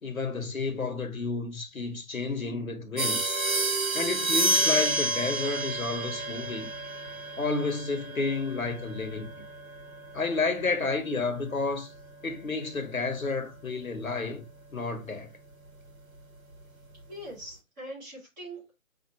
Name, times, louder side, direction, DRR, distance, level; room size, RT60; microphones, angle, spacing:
voice 1, 0.0-3.4 3.9-6.7 7.4-9.3 10.1-11.9 12.2-14.5 14.7-15.3, left 3 dB, 80° left, 1.2 m, -31 dB
sound 1, 3.0-13.2, right 2 dB, 80° right, 1.2 m, -31 dB
voice 2, 17.1-18.8, right 1 dB, 15° right, 1.8 m, -42 dB
5.2 x 2.8 x 2.9 m
figure-of-eight pair, 150°, 41 cm